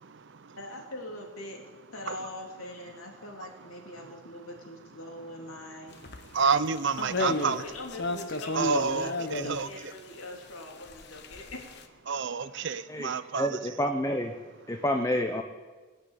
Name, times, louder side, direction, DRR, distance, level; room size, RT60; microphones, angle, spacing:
voice 1, 0.0-0.6 2.1-2.2 4.0-4.1 6.3-7.6 8.5-9.7 12.1-13.6, right 5 dB, 55° right, 13 dB, 0.6 m, -29 dB
voice 2, 0.6-1.6 1.9-6.0 7.0-9.1 9.4-12.1, left 1 dB, 75° left, 2 dB, 3.0 m, -42 dB
sound 1, 6.0-6.2 6.6-6.8 7.1-9.9 10.6-11.8, left 2 dB, 50° left, 1.1 m, -33 dB
voice 3, 12.9-14.3 14.7-15.4, equal, 15° left, 5 dB, 0.7 m, -29 dB
20.0 x 8.5 x 8.2 m, 1.4 s
head